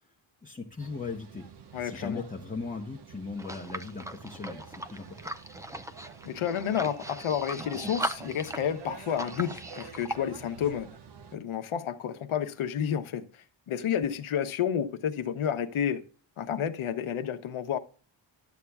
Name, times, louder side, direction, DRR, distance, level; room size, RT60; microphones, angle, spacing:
voice 1, 0.4-1.5 1.8-5.3, left 4 dB, 15° left, 0.8 m, -38 dB
sound 1, 0.8-11.4, right 6 dB, 55° right, 0.9 m, -48 dB
voice 2, 1.7-2.2 6.2-10.9 11.3-13.3 13.7-16.0 16.4-17.8, left 9 dB, 80° left, 1.1 m, -30 dB
sound 2, 3.4-10.2, right 1 dB, 5° right, 0.4 m, -38 dB
12.5 x 8.3 x 2.3 m
wide cardioid pair, 150°, 48 cm